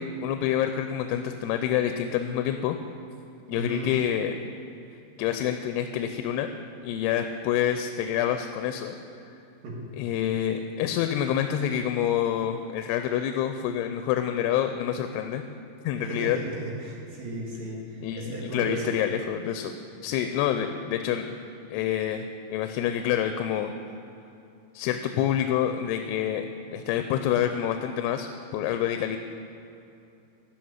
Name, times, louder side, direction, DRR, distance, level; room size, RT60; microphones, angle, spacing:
voice 1, 0.0-2.8 3.5-4.4 5.2-6.5 6.8-9.0 10.0-15.4 15.8-16.4 18.0-19.7 20.0-21.3 21.7-22.2 22.5-23.7 24.7-26.5 26.7-29.2, left 10 dB, 90° left, 7 dB, 2.7 m, -27 dB
voice 2, 3.5-4.0 9.6-9.8 16.0-19.0, right 1 dB, 65° right, -2 dB, 3.5 m, -35 dB
12.5 x 6.2 x 9.4 m, 2.7 s
omnidirectional pair, 4.6 m